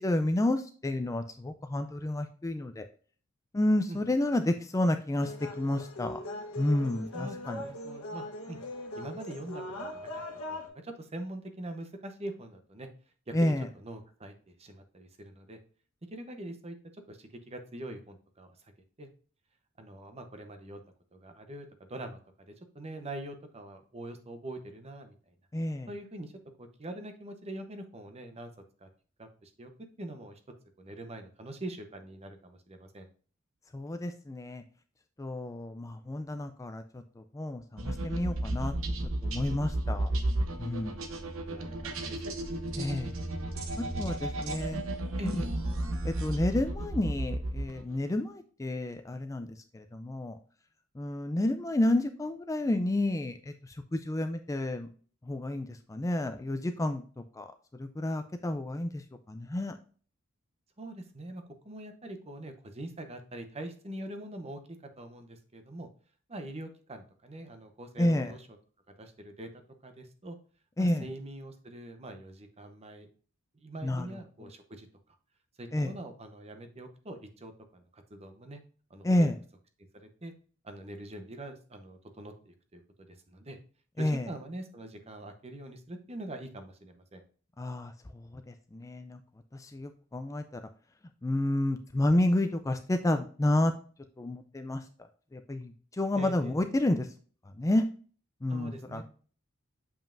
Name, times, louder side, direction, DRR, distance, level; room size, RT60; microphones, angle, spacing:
voice 1, 0.0-2.8 3.5-6.2 6.6-7.6 13.3-13.7 25.5-25.9 33.7-34.6 35.2-38.7 39.2-40.1 40.6-41.0 42.8-43.1 43.8-44.8 45.3-45.4 46.0-49.5 49.7-50.4 51.0-54.9 55.3-57.0 57.4-57.5 57.8-59.7 68.0-68.3 70.8-71.0 73.8-74.1 74.4-74.5 75.7-75.9 79.0-79.3 84.0-84.3 87.6-87.9 88.3-89.2 89.5-90.4 91.2-93.7 94.2-94.8 95.3-97.1 97.6-97.8 98.4-99.1, left 1 dB, 15° left, 7 dB, 0.4 m, -30 dB
sound 1, 5.2-10.7, left 1 dB, 85° left, 1.2 m, -40 dB
voice 2, 7.1-8.6 8.9-9.6 9.9-10.2 10.5-12.9 13.3-15.6 16.1-16.8 17.1-18.5 19.0-19.1 19.8-20.8 21.1-25.1 25.9-26.3 26.6-28.5 28.8-28.9 29.2-29.7 30.0-30.4 30.8-33.1 41.1-41.2 41.5-41.7 42.0-42.3 44.5-44.6 45.2-45.5 60.8-65.9 66.3-68.5 68.9-70.4 70.8-73.1 73.5-74.9 75.6-78.6 78.9-79.3 79.9-80.3 80.6-82.8 83.1-83.6 84.0-87.2 96.1-96.5 98.5-99.1, right 1 dB, 30° right, 7 dB, 0.8 m, -43 dB
sound 2, 37.8-48.0, right 1 dB, 70° right, 0.9 m, -33 dB
7.1 x 5.5 x 2.5 m, 0.40 s
head